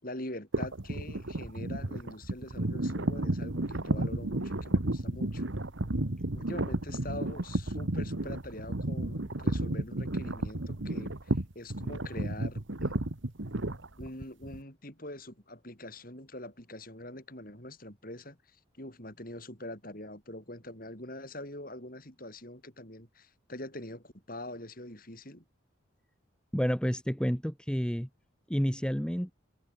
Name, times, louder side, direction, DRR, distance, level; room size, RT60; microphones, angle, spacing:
voice 1, 0.0-5.5 6.3-13.0 14.0-25.4, left 1 dB, 45° left, 7.3 m, -44 dB
sound 1, 0.5-14.6, right 1 dB, 70° right, 1.7 m, -32 dB
voice 2, 26.5-28.1 28.5-29.3, equal, 5° left, 2.1 m, -29 dB
head